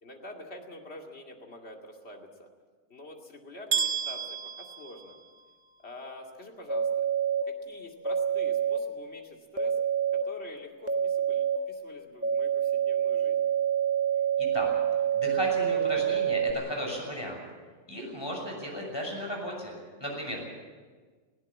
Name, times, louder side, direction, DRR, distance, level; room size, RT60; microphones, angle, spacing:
voice 1, 0.0-2.5 2.9-5.2 5.8-7.0 7.5-9.8 10.1-13.5, left 1 dB, 45° left, 1 dB, 2.7 m, -47 dB
sound 1, 3.7-5.7, right 7 dB, 50° right, 1.8 m, -32 dB
sound 2, 6.7-7.4 8.0-8.8 9.6-10.2 10.9-11.6 12.2-16.5, right 9 dB, 10° right, 1.4 m, -27 dB
voice 2, 14.4-14.7 15.1-17.4 17.9-19.7 20.0-20.5, equal, 15° left, 0 dB, 6.4 m, -35 dB
19.5 x 17.0 x 8.6 m, 1.5 s
omnidirectional pair, 1.5 m